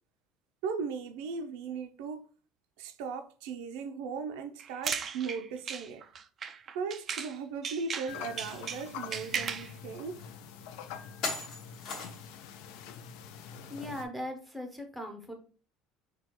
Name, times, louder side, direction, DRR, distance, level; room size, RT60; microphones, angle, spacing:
voice 1, 0.6-2.3 2.8-6.0 6.7-10.2, right 5 dB, 85° right, 0.5 m, -37 dB
sound 1, 4.6-7.4 7.6-9.7, right 7 dB, 25° right, 0.3 m, -37 dB
sound 2, 8.1-14.0, left 7 dB, 65° left, 0.5 m, -45 dB
sound 3, 8.5-8.6 9.1-9.2 10.2-10.3 11.2-12.4, left 3 dB, 45° left, 1.5 m, -37 dB
voice 2, 13.7-15.3, left 1 dB, ahead, 0.7 m, -39 dB
6.1 x 2.3 x 2.9 m
cardioid pair, 175°, 0 cm